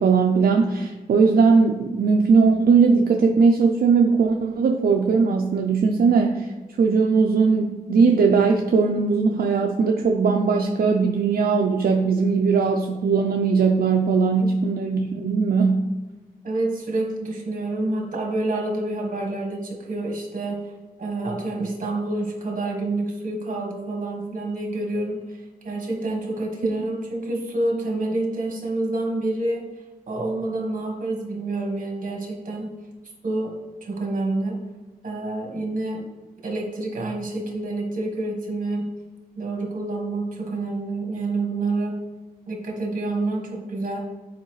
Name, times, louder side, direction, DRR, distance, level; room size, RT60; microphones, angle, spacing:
voice 1, 0.0-6.5 6.8-15.9, right 5 dB, 80° right, 2 dB, 0.5 m, -19 dB
voice 2, 16.4-20.6 21.0-29.6 30.1-32.7 33.2-33.5 33.8-34.6 35.0-36.1 36.4-38.9 39.4-42.0 42.5-44.0, right 2 dB, 55° right, 0 dB, 1.4 m, -28 dB
7.9 x 4.7 x 3.2 m, 1.2 s
wide cardioid pair, 140°, 16 cm